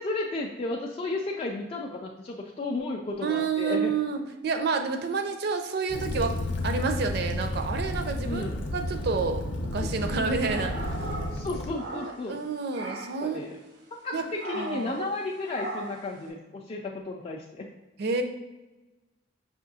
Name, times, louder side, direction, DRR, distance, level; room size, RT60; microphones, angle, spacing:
voice 1, 0.0-3.9 8.2-8.7 11.3-12.4 13.2-13.6 14.0-17.7, left 2 dB, 35° left, -1 dB, 0.3 m, -33 dB
voice 2, 3.2-10.8 11.9-13.5 14.1-14.3 14.5-15.1 18.0-18.2, right 4 dB, 60° right, 6 dB, 0.5 m, -29 dB
Waves surf / Splash splatter / Trickle dribble, 5.9-11.7, left 1 dB, 75° left, 0.6 m, -32 dB
sound 1, 10.0-12.4 12.7-13.3 14.4-14.9 15.5-16.1, right 2 dB, 90° right, 0.8 m, -39 dB
5.6 x 2.6 x 2.7 m, 1.1 s
head